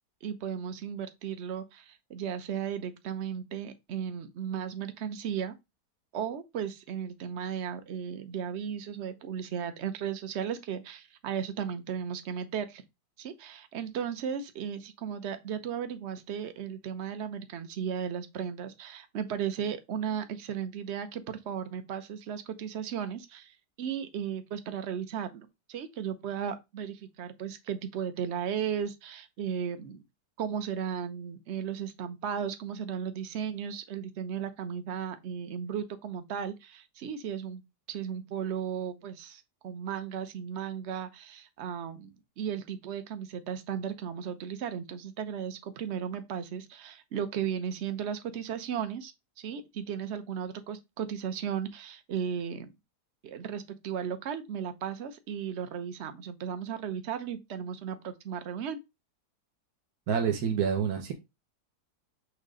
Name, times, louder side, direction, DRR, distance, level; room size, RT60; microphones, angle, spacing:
voice 1, 0.2-5.6 6.1-12.8 13.2-30.0 30.4-37.6 37.9-42.1 42.4-52.7 53.2-58.8, right 8 dB, 50° right, 1.0 m, -35 dB
voice 2, 60.1-61.1, right 7 dB, 65° right, 1.4 m, -27 dB
6.6 x 3.2 x 5.0 m
omnidirectional pair, 1.8 m